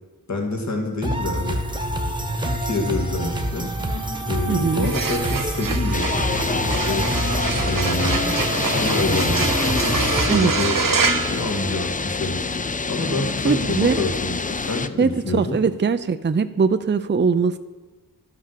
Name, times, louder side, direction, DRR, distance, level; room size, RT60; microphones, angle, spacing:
voice 1, 0.3-1.6 2.4-3.7 4.3-7.1 7.7-8.2 8.6-9.7 10.3-10.8 11.3-12.4 12.9-15.6, left 2 dB, 50° left, 2 dB, 1.8 m, -27 dB
sound 1, 1.0-10.3, equal, 15° right, 1.2 m, -26 dB
voice 2, 4.5-4.9 10.3-10.5 13.4-14.0 15.0-17.6, right 5 dB, 30° right, 10 dB, 0.5 m, -21 dB
sound 2, 4.7-12.2, right 5 dB, 65° right, 0.9 m, -26 dB
sound 3, 5.9-14.9, left 4 dB, 25° left, 0.4 m, -26 dB
12.0 x 5.8 x 6.4 m, 1.3 s
wide cardioid pair, 65°, 36 cm